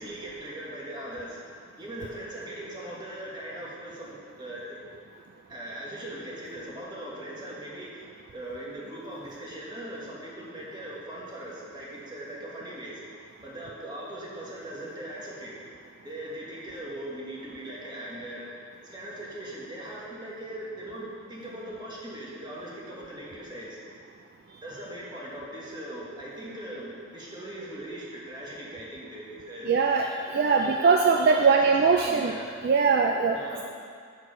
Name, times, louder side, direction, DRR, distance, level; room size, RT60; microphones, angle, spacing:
voice 1, 0.0-1.4 1.8-4.8 5.5-13.0 13.4-15.6 16.0-18.5 18.8-23.8 24.6-29.7 30.3-32.5 33.3-33.6, right 1 dB, 20° right, -5 dB, 1.3 m, -40 dB
voice 2, 29.7-32.4 32.6-33.4, right 5 dB, 50° right, 2 dB, 0.3 m, -21 dB
6.1 x 4.6 x 6.4 m, 2.1 s
head